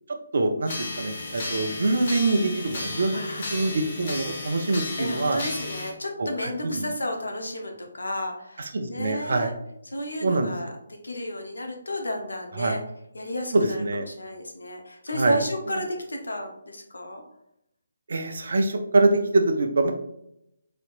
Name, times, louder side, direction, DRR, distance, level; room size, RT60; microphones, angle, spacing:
voice 1, 0.3-3.2 3.5-5.4 6.2-6.9 8.7-9.5 10.2-10.5 12.6-12.8 13.5-14.0 15.1-15.4 18.1-19.9, right 2 dB, 60° right, 5 dB, 0.6 m, -24 dB
sound 1, 0.7-5.9, left 2 dB, 50° left, 1.0 m, -34 dB
voice 2, 3.1-3.7 5.0-9.5 9.9-12.8 13.1-17.2, left 1 dB, 80° left, 2 dB, 0.9 m, -32 dB
4.2 x 2.9 x 2.5 m, 0.78 s
figure-of-eight pair, 150°, 0 cm